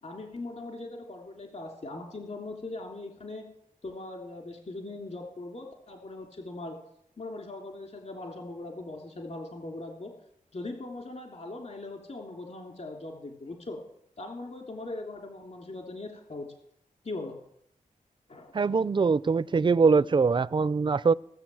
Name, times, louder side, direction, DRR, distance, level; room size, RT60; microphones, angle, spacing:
voice 1, 0.0-3.4 3.8-6.8 7.2-10.1 10.5-13.8 14.2-16.5 17.0-17.4 18.3-18.6 18.9-19.0, left 2 dB, 50° left, 3.0 m, -40 dB
voice 2, 18.5-21.1, right 4 dB, 35° right, 0.5 m, -23 dB
18.0 x 7.6 x 7.6 m
wide cardioid pair, 95°, 14 cm